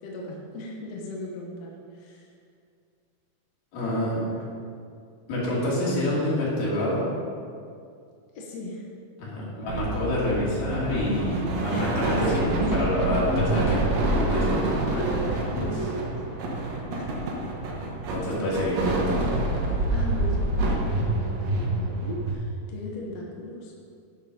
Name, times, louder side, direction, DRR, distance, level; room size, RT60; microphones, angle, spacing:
voice 1, 0.0-2.3 8.3-8.9 11.7-11.9 12.1-12.6 13.4-13.7 14.9-17.2 19.9-23.7, equal, 60° left, -2 dB, 1.8 m, -37 dB
voice 2, 3.7-4.2 5.3-7.0 9.2-12.4 12.7-13.9 14.2-14.6 18.1-19.3, left 1 dB, 80° left, -7 dB, 4.7 m, -27 dB
sound 1, 9.7-22.3, right 1 dB, 70° right, 2.9 m, -27 dB
11.5 x 7.2 x 5.5 m, 2.3 s
omnidirectional pair, 4.2 m